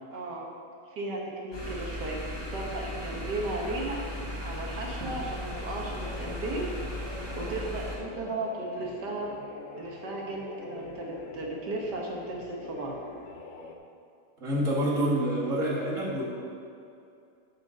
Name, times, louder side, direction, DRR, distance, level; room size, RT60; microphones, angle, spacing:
voice 1, 0.1-0.5 0.9-4.0 4.4-6.6 7.4-9.3 9.8-12.9, right 2 dB, 60° right, -1 dB, 1.7 m, -35 dB
sound 1, 1.5-8.0, equal, 15° left, 1.3 m, -36 dB
sound 2, 6.0-13.8, left 4 dB, 70° left, 0.7 m, -44 dB
voice 2, 14.4-16.2, right 1 dB, 40° right, -4 dB, 1.9 m, -27 dB
9.0 x 5.2 x 6.2 m, 2.5 s
omnidirectional pair, 2.2 m